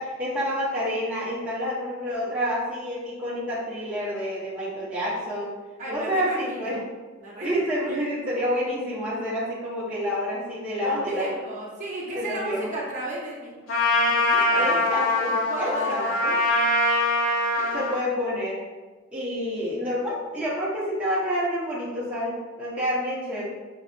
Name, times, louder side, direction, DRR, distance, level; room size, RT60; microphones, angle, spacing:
voice 1, 0.0-5.6 5.9-6.8 7.4-11.3 12.1-12.7 14.5-16.4 17.7-18.6 19.1-23.4, equal, 5° right, -10 dB, 0.8 m, -28 dB
voice 2, 5.8-6.7 7.2-7.5 7.9-8.0 10.8-13.5 14.1-14.8 15.3-16.3 17.5-17.8, right 1 dB, 35° right, -5 dB, 0.8 m, -34 dB
Trumpet, 13.7-18.0, left 2 dB, 65° left, 0.7 m, -23 dB
6.0 x 2.3 x 2.6 m, 1.3 s
head